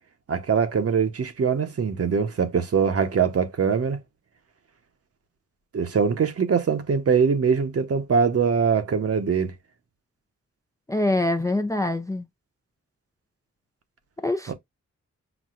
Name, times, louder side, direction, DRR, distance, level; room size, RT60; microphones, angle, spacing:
voice 1, 0.3-4.0 5.7-9.5 14.5-14.6, right 6 dB, 55° right, 0.8 m, -22 dB
voice 2, 10.9-12.3 14.2-14.5, left 2 dB, 10° left, 0.4 m, -24 dB
6.0 x 2.2 x 2.4 m
wide cardioid pair, 80°, 29 cm